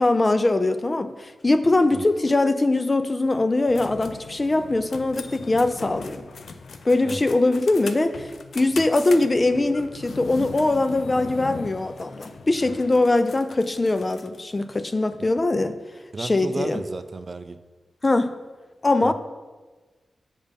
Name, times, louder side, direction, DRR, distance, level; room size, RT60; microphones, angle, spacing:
voice 1, 0.0-6.2 6.9-15.8 16.2-16.8 18.0-18.3 18.8-19.1, left 2 dB, 30° left, 10 dB, 0.4 m, -22 dB
sound 1, 3.7-14.5, left 5 dB, 85° left, 0.4 m, -40 dB
voice 2, 16.1-17.6 19.0-19.1, right 3 dB, 45° right, 11 dB, 0.4 m, -33 dB
7.1 x 5.4 x 5.2 m, 1.3 s
wide cardioid pair, 95°, 0 cm